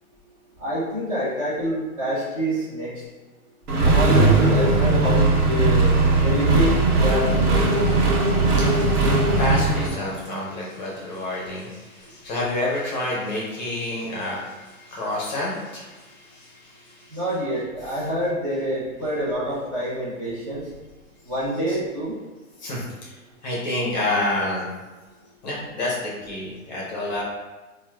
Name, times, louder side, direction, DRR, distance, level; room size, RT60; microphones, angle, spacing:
voice 1, 0.6-2.9 3.8-5.9 6.2-7.6 17.1-20.6 21.3-22.2, equal, 25° right, -8 dB, 0.6 m, -26 dB
Accelerating revving vroom, 3.7-9.9, right 2 dB, 80° right, 0.8 m, -18 dB
voice 2, 8.5-17.2 17.8-18.0 21.7-21.8 22.6-23.1 23.4-24.7 25.4-27.2, left 1 dB, 30° left, -4 dB, 0.6 m, -29 dB
4.3 x 2.1 x 2.3 m, 1.2 s
hypercardioid pair, 145°, 44 cm